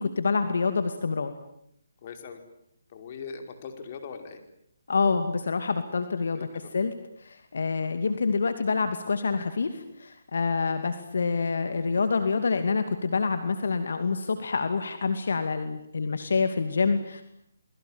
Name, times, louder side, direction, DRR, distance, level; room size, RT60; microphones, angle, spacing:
voice 1, 0.0-1.3 4.9-6.9 7.2-17.2, left 4 dB, 70° left, 9 dB, 2.6 m, -27 dB
voice 2, 2.0-2.4 2.9-4.4 6.3-6.7, left 5 dB, 40° left, 6 dB, 5.1 m, -40 dB
29.0 x 22.0 x 9.0 m, 0.72 s
hypercardioid pair, 155°, 0 cm